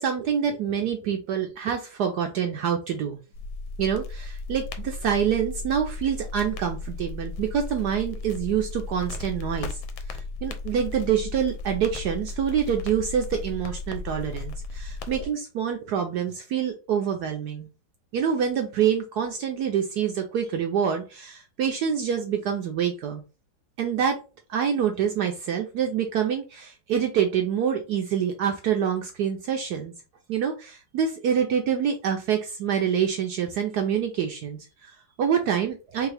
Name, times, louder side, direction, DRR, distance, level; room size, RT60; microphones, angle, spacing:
voice 1, 0.0-3.2 3.8-9.8 10.1-17.7 18.1-23.2 23.8-24.2 24.5-29.9 30.3-36.1, right 8 dB, 70° right, 4 dB, 1.0 m, -26 dB
sound 1, 3.3-15.3, left 3 dB, 75° left, 1.4 m, -35 dB
3.6 x 3.2 x 3.3 m, 0.31 s
omnidirectional pair, 2.2 m